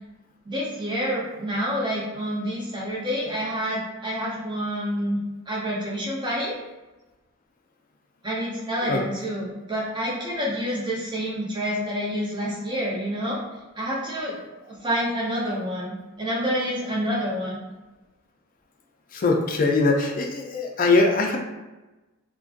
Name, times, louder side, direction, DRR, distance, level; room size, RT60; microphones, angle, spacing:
voice 1, 0.4-5.2 5.5-6.5 8.2-13.4 13.8-17.6, equal, 20° right, -6 dB, 0.7 m, -28 dB
voice 2, 19.1-21.4, left 3 dB, 40° left, 2 dB, 0.3 m, -21 dB
2.4 x 2.2 x 2.4 m, 1.1 s
head